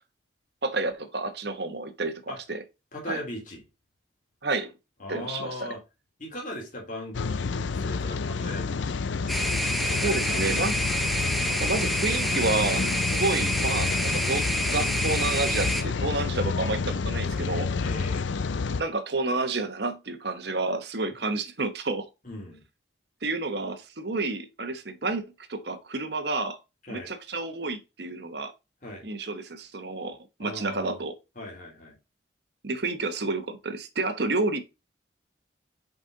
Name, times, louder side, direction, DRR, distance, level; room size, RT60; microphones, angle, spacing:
voice 1, 0.6-2.2 2.5-2.6 3.1-3.2 4.4-4.7 5.1-5.7 9.9-10.7 11.5-17.7 18.8-22.0 23.2-25.2 25.5-26.6 26.9-28.5 29.0-31.1 32.6-34.6, right 3 dB, 60° right, 1.0 m, -30 dB
voice 2, 2.9-3.6 5.0-5.8 6.2-9.1 10.0-10.9 17.8-18.2 22.2-22.6 26.9-27.1 28.8-29.1 30.4-31.0 31.3-32.0, left 1 dB, 45° left, 3.1 m, -38 dB
Rain, 7.1-18.8, left 4 dB, 75° left, 0.5 m, -29 dB
sound 1, 9.3-15.8, right 1 dB, ahead, 0.6 m, -28 dB
6.4 x 5.2 x 3.9 m
head